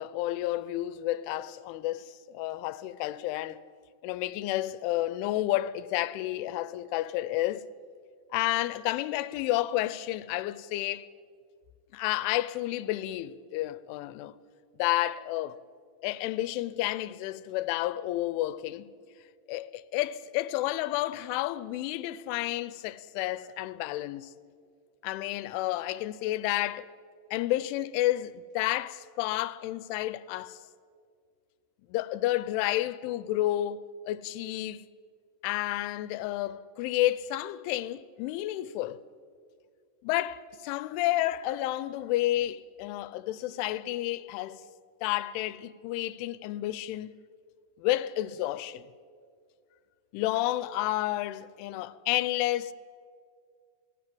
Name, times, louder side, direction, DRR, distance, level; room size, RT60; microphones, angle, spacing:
voice 1, 0.0-3.6 4.0-7.7 8.3-11.1 11.9-14.4 14.8-15.6 16.0-18.9 19.5-24.3 25.0-26.9 27.3-30.6 31.9-34.8 35.4-39.0 40.0-44.6 45.0-47.2 47.8-48.9 50.1-52.7, left 15 dB, 85° left, 3.2 m, -31 dB
28.5 x 18.5 x 7.6 m
omnidirectional pair, 5.5 m